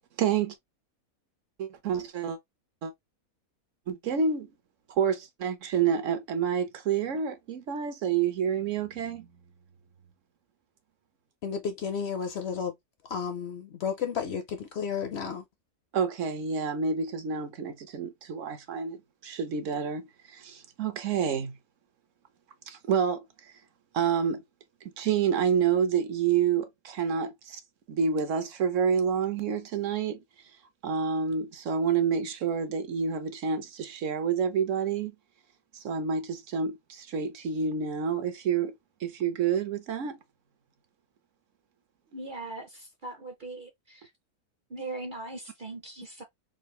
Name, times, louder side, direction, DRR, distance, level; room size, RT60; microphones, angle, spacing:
voice 1, 0.2-0.5 1.6-2.4 2.8-2.9 3.9-4.5 4.9-9.3 15.9-20.0 20.3-21.6 22.7-23.5 23.9-24.4 25.0-27.6 27.9-30.2 30.8-35.1 35.7-38.7 39.0-40.2, right 7 dB, 65° right, 1.0 m, -28 dB
voice 2, 11.4-12.7 13.1-15.4, left 6 dB, 60° left, 0.8 m, -32 dB
voice 3, 42.1-44.1 44.7-46.2, right 2 dB, 45° right, 0.7 m, -40 dB
3.8 x 2.4 x 3.1 m
omnidirectional pair, 1.5 m